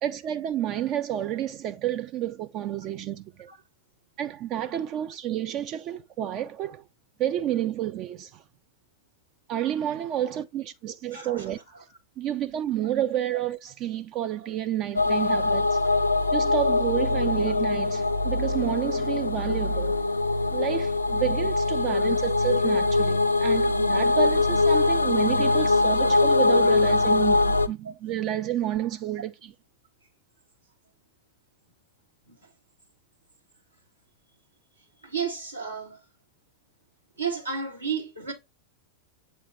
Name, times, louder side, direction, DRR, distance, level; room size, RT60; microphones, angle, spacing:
voice 1, 0.0-3.5 4.2-6.9 7.2-8.4 9.5-11.6 12.2-15.8 16.3-20.0 20.5-29.5, right 11 dB, 35° right, 0.4 m, -30 dB
voice 2, 11.1-11.5 27.8-27.9 32.3-32.4 35.0-36.0 37.2-38.3, right 6 dB, 85° right, 2.1 m, -32 dB
sound 1, 15.0-27.7, left 3 dB, 80° left, 0.5 m, -23 dB
7.8 x 3.3 x 4.1 m
figure-of-eight pair, 90°, 0 cm